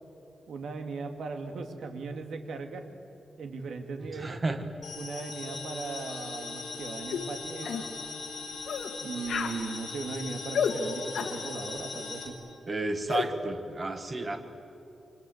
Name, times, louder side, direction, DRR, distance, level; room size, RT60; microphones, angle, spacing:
voice 1, 0.5-2.8 3.4-4.4 4.9-8.0 9.0-12.4, right 4 dB, 75° right, 6 dB, 2.3 m, -38 dB
voice 2, 4.2-4.7 12.7-14.4, right 2 dB, 25° right, 7 dB, 1.8 m, -31 dB
sound 1, 4.8-12.3, left 4 dB, 65° left, 6.1 m, -39 dB
sound 2, 7.1-7.3 7.7-7.9 8.7-8.9 9.3-9.6 10.5-10.8 11.1-11.4 13.1-13.3, left 7 dB, 85° left, 1.8 m, -30 dB
28.5 x 25.0 x 8.0 m, 2.9 s
wide cardioid pair, 160°, 0 cm